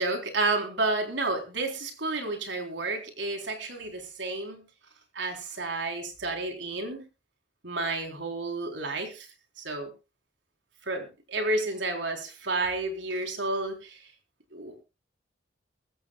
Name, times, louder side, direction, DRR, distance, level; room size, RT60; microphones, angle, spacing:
voice 1, 0.0-4.6 5.1-7.0 7.6-9.3 9.6-9.9 10.8-14.0 14.5-14.8, right 2 dB, 85° right, 4 dB, 3.9 m, -31 dB
21.0 x 15.5 x 2.4 m, 0.29 s
head